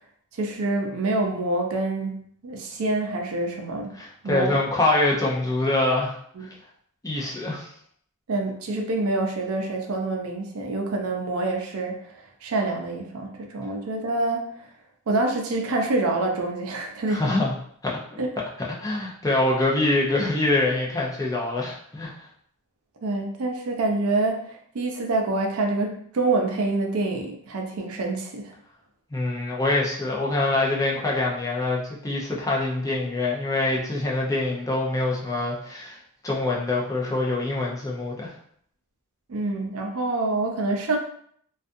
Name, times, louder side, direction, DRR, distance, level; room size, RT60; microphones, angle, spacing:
voice 1, 0.3-3.9 4.2-4.6 6.4-6.5 8.3-14.5 15.1-17.3 18.2-18.3 23.0-28.5 39.3-41.0, right 2 dB, 75° right, 2 dB, 0.5 m, -26 dB
voice 2, 3.9-6.5 7.0-7.7 17.1-17.5 17.8-18.0 18.8-22.1 29.1-36.0 36.2-38.3, left 2 dB, 15° left, -3 dB, 0.5 m, -25 dB
2.4 x 2.3 x 2.5 m, 0.63 s
head